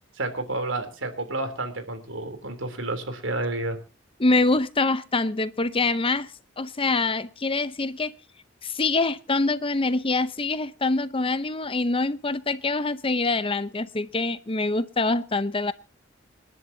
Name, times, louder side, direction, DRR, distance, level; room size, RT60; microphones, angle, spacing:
voice 1, 0.2-3.8, right 2 dB, 80° right, 8 dB, 3.4 m, -30 dB
voice 2, 4.2-6.3 6.6-8.1 8.6-15.7, left 3 dB, 30° left, 14 dB, 0.8 m, -25 dB
28.5 x 11.0 x 2.8 m, 0.32 s
head